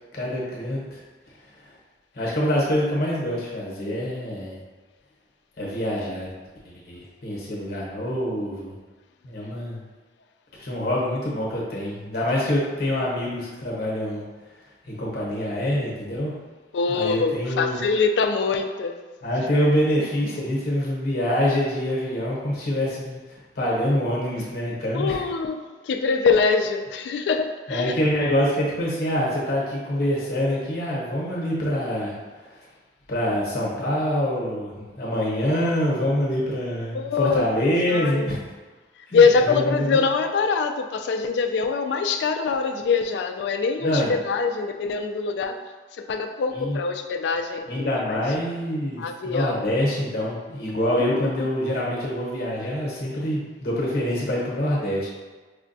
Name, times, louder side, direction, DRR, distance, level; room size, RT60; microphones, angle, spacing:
voice 1, 0.1-1.0 1.6-1.7 2.1-4.6 5.6-6.3 6.6-8.7 9.2-9.8 10.6-14.2 14.8-16.3 16.9-17.8 19.2-25.2 27.7-32.2 32.5-32.6 33.1-38.4 39.1-40.0 43.8-44.2 46.5-46.8 47.7-55.1, equal, 55° left, -4 dB, 0.9 m, -25 dB
voice 2, 16.7-19.0 24.9-27.9 36.9-37.4 37.9-38.3 39.1-45.6 46.0-48.2 49.0-49.6 51.0-51.3, left 5 dB, 75° left, 6 dB, 0.3 m, -23 dB
4.9 x 2.2 x 2.6 m, 1.3 s
head